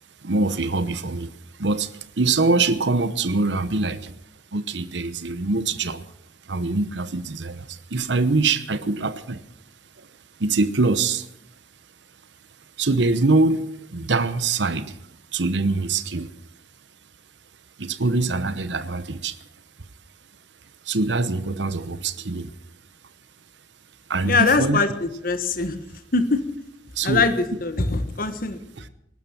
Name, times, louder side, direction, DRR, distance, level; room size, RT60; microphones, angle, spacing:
voice 1, 0.2-4.2 4.5-6.1 6.4-9.4 10.0-10.1 10.4-11.3 12.8-15.0 15.3-16.3 17.8-19.4 20.8-22.5 24.1-24.8 26.9-27.3 28.8-28.9, right 3 dB, 85° right, 1.0 m, -24 dB
voice 2, 24.2-24.9 25.2-25.7 26.1-26.4 27.0-27.3 27.6-28.6, left 4 dB, 50° left, 1.4 m, -21 dB
19.0 x 12.5 x 6.0 m
head